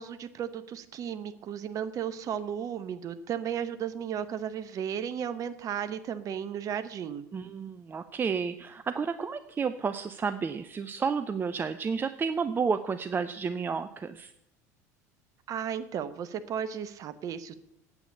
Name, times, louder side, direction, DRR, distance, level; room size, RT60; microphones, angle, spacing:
voice 1, 0.0-7.2 15.5-17.5, right 8 dB, 40° right, 12 dB, 1.0 m, -34 dB
voice 2, 7.3-14.3, right 5 dB, 25° right, 12 dB, 0.6 m, -31 dB
8.9 x 8.3 x 8.6 m, 0.79 s
figure-of-eight pair, 70°, 9 cm